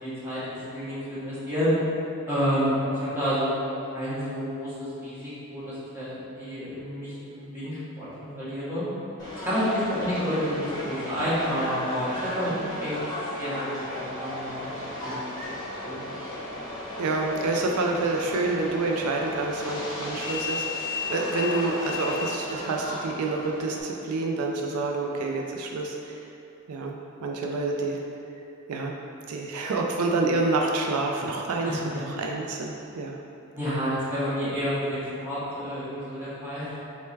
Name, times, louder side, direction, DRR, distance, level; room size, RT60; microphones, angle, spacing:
voice 1, 0.0-1.7 2.2-3.5 3.9-8.8 9.4-12.5 12.8-12.9 13.4-15.2 15.8-16.1 31.6-32.0 33.5-36.8, equal, 10° right, -11 dB, 1.2 m, -29 dB
Subway metro underground, 9.2-23.8, left 2 dB, 15° left, 1.1 m, -34 dB
voice 2, 17.0-26.3 26.7-28.0 28.7-29.0 29.3-33.2, right 3 dB, 80° right, 1 dB, 0.4 m, -28 dB
6.3 x 2.2 x 3.3 m, 2.7 s
head